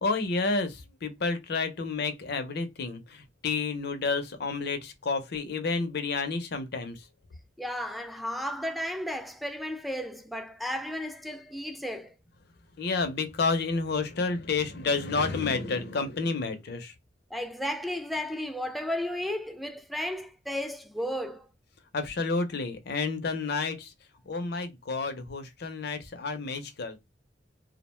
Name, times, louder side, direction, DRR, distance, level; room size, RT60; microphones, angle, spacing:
voice 1, 0.0-7.0 12.8-16.9 21.9-23.9 24.3-27.0, left 4 dB, 65° left, 0.6 m, -30 dB
voice 2, 7.6-12.1 17.3-21.5, left 1 dB, ahead, 0.3 m, -34 dB
2.4 x 2.1 x 3.1 m
head